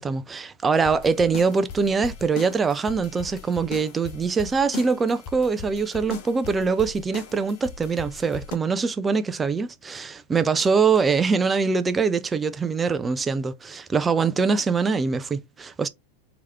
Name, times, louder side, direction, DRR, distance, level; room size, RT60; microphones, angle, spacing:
voice 1, 0.0-15.9, right 5 dB, 15° right, 0.4 m, -23 dB
sound 1, 0.8-8.6, left 6 dB, 45° left, 0.8 m, -39 dB
3.1 x 2.9 x 3.4 m
figure-of-eight pair, 90°, 0 cm